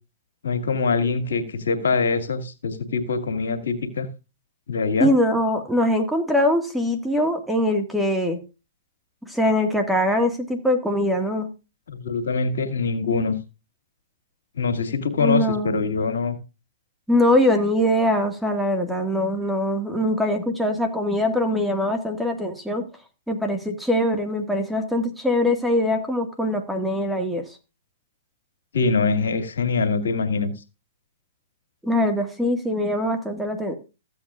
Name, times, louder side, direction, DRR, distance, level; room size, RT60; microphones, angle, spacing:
voice 1, 0.4-4.1 4.7-5.1 11.9-13.4 14.6-16.4 28.7-30.5, left 4 dB, 80° left, 7 dB, 2.1 m, -23 dB
voice 2, 5.0-8.4 9.3-11.5 15.2-15.9 17.1-22.9 23.3-27.4 31.8-33.8, left 1 dB, ahead, 4 dB, 1.9 m, -22 dB
15.0 x 8.5 x 2.5 m, 0.29 s
hypercardioid pair, 125°, 0 cm